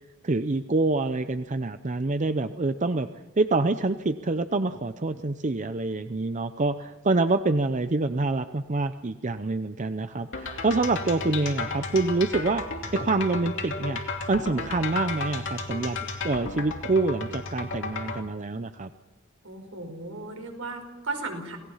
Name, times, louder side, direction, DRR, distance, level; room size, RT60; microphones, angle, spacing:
voice 1, 0.2-3.1 3.4-12.6 12.9-14.0 14.3-16.0 16.2-18.9, right 3 dB, 35° right, 10 dB, 0.6 m, -26 dB
sound 1, 10.3-18.2, left 3 dB, 60° left, 2.8 m, -33 dB
voice 2, 19.4-21.6, right 3 dB, 75° right, 4 dB, 5.2 m, -35 dB
28.5 x 18.5 x 5.7 m, 1.1 s
head